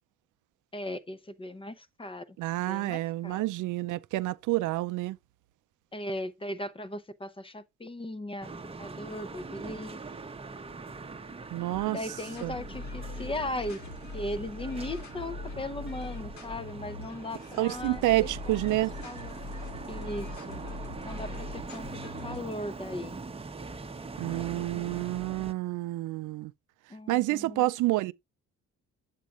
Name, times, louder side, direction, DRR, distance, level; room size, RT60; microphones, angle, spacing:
voice 1, 0.7-2.4 2.7-3.4 5.9-8.5 8.8-10.0 11.8-13.8 14.1-18.6 19.0-19.4 19.9-20.6 21.0-23.2 26.9-27.7, left 1 dB, 20° left, 0.7 m, -38 dB
voice 2, 2.4-5.2 11.5-12.0 12.4-12.6 17.6-18.9 24.2-26.5 27.1-28.1, right 17 dB, 80° right, 0.5 m, -28 dB
sound 1, 8.4-25.5, right 4 dB, 20° right, 0.8 m, -42 dB
sound 2, 11.7-22.5, left 3 dB, 65° left, 1.7 m, -42 dB
8.3 x 7.4 x 2.4 m
cardioid pair, 90°, 30 cm